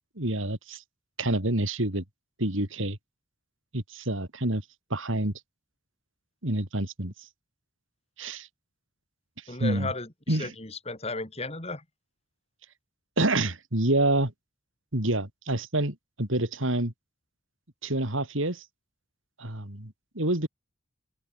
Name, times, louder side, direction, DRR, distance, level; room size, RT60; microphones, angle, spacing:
voice 1, 0.2-0.8 1.2-2.0 2.4-3.0 3.7-4.6 4.9-5.3 6.4-7.1 8.2-8.5 9.6-9.9 10.3-10.5 13.2-14.3 14.9-16.9 17.8-18.6 19.4-20.5, right 1 dB, 65° right, 3.6 m, -27 dB
voice 2, 9.5-11.8, left 3 dB, 30° left, 3.7 m, -35 dB
open air
head